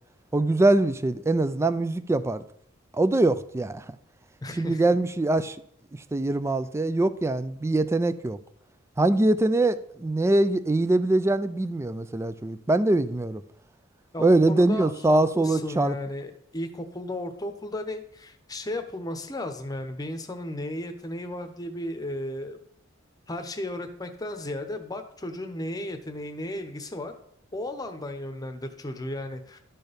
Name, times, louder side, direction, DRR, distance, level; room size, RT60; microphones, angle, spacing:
voice 1, 0.3-2.4 2.9-3.9 4.6-5.6 6.1-8.4 9.0-13.4 14.2-16.0, right 2 dB, 15° right, 0.3 m, -23 dB
voice 2, 4.4-5.0 14.1-22.6 23.3-27.1 27.5-29.6, left 1 dB, 20° left, 0.9 m, -34 dB
12.0 x 4.5 x 5.1 m
head